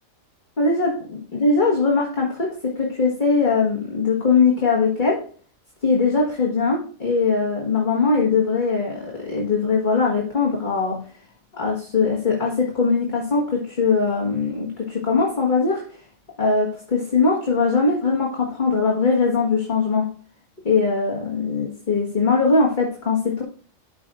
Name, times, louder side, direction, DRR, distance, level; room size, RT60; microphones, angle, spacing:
voice 1, 0.6-5.2 5.8-11.0 11.5-15.8 16.4-20.1 20.7-23.4, left 4 dB, 35° left, -2 dB, 1.7 m, -21 dB
12.5 x 5.2 x 2.5 m, 0.43 s
omnidirectional pair, 1.4 m